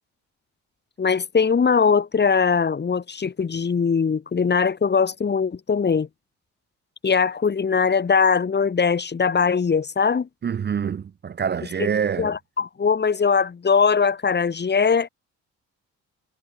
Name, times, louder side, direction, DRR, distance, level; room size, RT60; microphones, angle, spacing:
voice 1, 1.0-6.1 7.0-10.3 12.2-15.1, left 5 dB, 35° left, 2.3 m, -21 dB
voice 2, 10.4-12.3, right 7 dB, 35° right, 0.7 m, -26 dB
cardioid pair, 90°, 30 cm